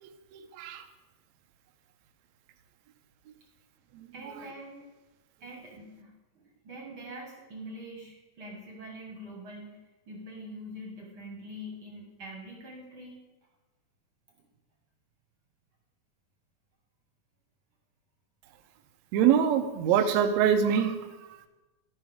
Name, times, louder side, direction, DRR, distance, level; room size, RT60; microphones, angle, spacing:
voice 1, 0.0-0.8 3.9-4.3 19.1-21.0, right 8 dB, 75° right, 6 dB, 1.7 m, -25 dB
voice 2, 4.1-4.9 5.4-6.1 6.4-13.2, equal, 50° right, -1 dB, 1.9 m, -44 dB
12.0 x 9.9 x 3.6 m, 1.1 s
omnidirectional pair, 3.8 m